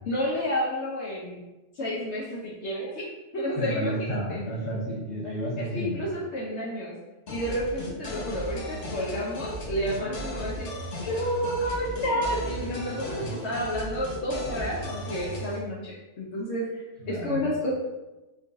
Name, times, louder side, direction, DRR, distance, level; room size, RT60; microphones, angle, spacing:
voice 1, 0.1-1.4 1.8-3.0 3.3-4.4 5.7-6.9 7.3-10.7 11.0-13.1 13.4-16.7 17.1-17.7, equal, 65° left, -5 dB, 0.8 m, -30 dB
voice 2, 3.6-6.0 13.0-13.3 17.0-17.5, right 1 dB, ahead, -9 dB, 0.9 m, -31 dB
sound 1, 7.3-15.6, equal, 80° left, 0.3 m, -36 dB
3.7 x 2.2 x 2.5 m, 1.1 s
omnidirectional pair, 1.4 m